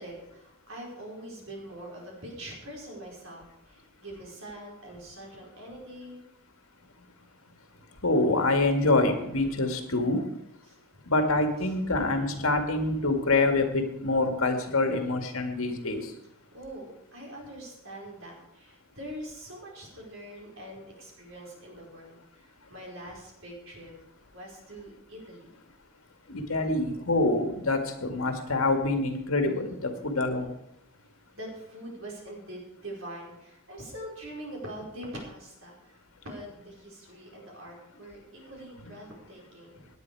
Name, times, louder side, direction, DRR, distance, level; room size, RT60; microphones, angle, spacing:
voice 1, 0.0-6.2 10.6-11.0 11.6-12.6 13.0-13.1 16.5-23.9 24.3-25.5 31.3-39.9, right 1 dB, 65° right, -2 dB, 5.1 m, -44 dB
voice 2, 8.0-10.2 11.1-16.1 26.3-30.5, left 2 dB, 75° left, 5 dB, 2.1 m, -26 dB
17.5 x 10.0 x 4.8 m, 0.80 s
head